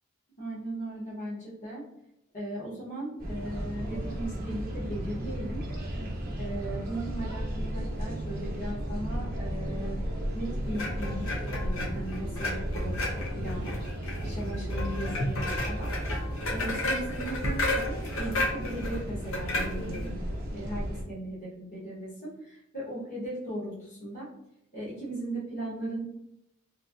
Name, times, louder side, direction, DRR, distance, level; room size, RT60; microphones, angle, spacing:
voice 1, 0.4-1.8 2.3-5.6 6.4-10.0 10.3-11.3 11.6-13.0 13.3-13.7 14.1-15.9 16.5-20.2 20.5-24.3 24.7-26.0, right 1 dB, 35° left, -8 dB, 1.1 m, -37 dB
sound 1, 3.2-21.0, right 1 dB, 45° right, 0.7 m, -34 dB
sound 2, 10.7-20.1, left 2 dB, 65° left, 0.7 m, -33 dB
3.2 x 2.6 x 2.5 m, 0.83 s
head